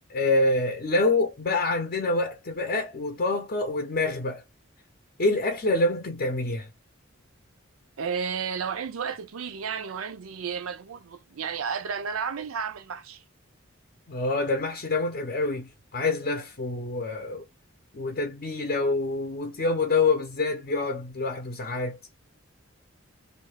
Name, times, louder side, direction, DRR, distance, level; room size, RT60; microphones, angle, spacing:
voice 1, 0.1-4.4 5.2-6.7 14.1-17.4 17.9-22.0, left 2 dB, 45° left, 0.6 m, -26 dB
voice 2, 8.0-13.2, right 6 dB, 90° right, 0.5 m, -32 dB
2.6 x 2.3 x 3.2 m
head